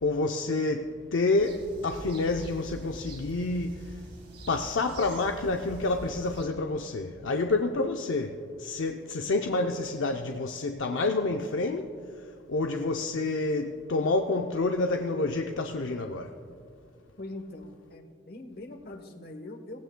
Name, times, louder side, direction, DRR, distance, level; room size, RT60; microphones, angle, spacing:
voice 1, 0.0-4.0 4.5-11.9 12.5-16.4, left 3 dB, 80° left, 0.6 m, -28 dB
sound 1, 1.4-6.4, equal, 55° right, 2.8 m, -45 dB
voice 2, 17.2-19.8, left 2 dB, 50° left, 1.1 m, -42 dB
18.5 x 16.0 x 2.2 m
head